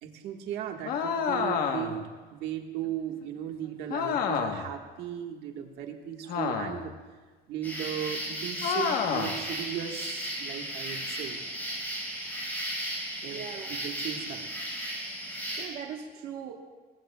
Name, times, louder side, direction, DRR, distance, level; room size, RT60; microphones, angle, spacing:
voice 1, 0.0-2.0 2.3-6.9 7.5-11.4 13.2-13.4 13.7-14.5, right 10 dB, 75° right, 3 dB, 1.5 m, -36 dB
sound 1, 0.9-2.1 3.9-4.7 6.3-7.0 8.6-9.4, left 6 dB, 60° left, 1.1 m, -29 dB
sound 2, 7.6-15.6, equal, 10° left, 5.0 m, -35 dB
voice 2, 13.3-13.8 15.6-16.5, right 8 dB, 60° right, 1 dB, 1.2 m, -39 dB
20.5 x 19.5 x 2.3 m, 1.4 s
cardioid pair, 165°, 17 cm